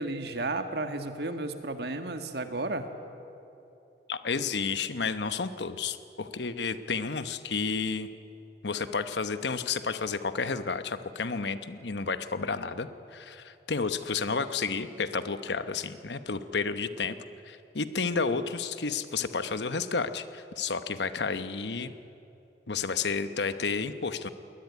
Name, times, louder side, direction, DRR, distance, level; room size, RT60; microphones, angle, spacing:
voice 1, 0.0-2.9, right 2 dB, 65° right, 7 dB, 1.7 m, -33 dB
voice 2, 4.1-8.1 8.6-17.1 17.5-22.0 22.7-24.3, left 4 dB, 75° left, 11 dB, 1.0 m, -31 dB
21.5 x 19.0 x 9.6 m, 2.9 s
head